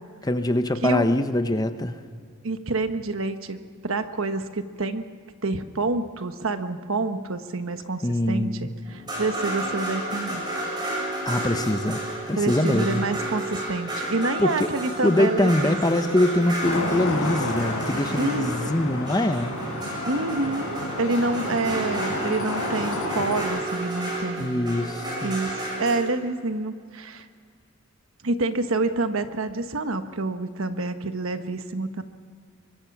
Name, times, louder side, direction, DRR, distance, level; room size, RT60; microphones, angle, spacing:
voice 1, 0.2-2.0 8.0-8.7 11.2-12.0 12.3-13.0 14.4-14.7 15.0-19.5 24.4-25.4, left 1 dB, 15° left, 9 dB, 0.8 m, -23 dB
voice 2, 2.4-5.0 5.4-10.4 12.4-15.8 16.0-16.2 18.1-18.5 20.0-24.6 25.2-27.3 28.2-32.0, right 2 dB, 65° right, 8 dB, 1.2 m, -27 dB
sound 1, 8.9-26.0, right 1 dB, 20° right, 7.1 m, -32 dB
Traffic noise roadway noise, 16.6-23.4, left 1 dB, 75° left, 6.2 m, -31 dB
24.5 x 22.5 x 6.0 m, 2.1 s
head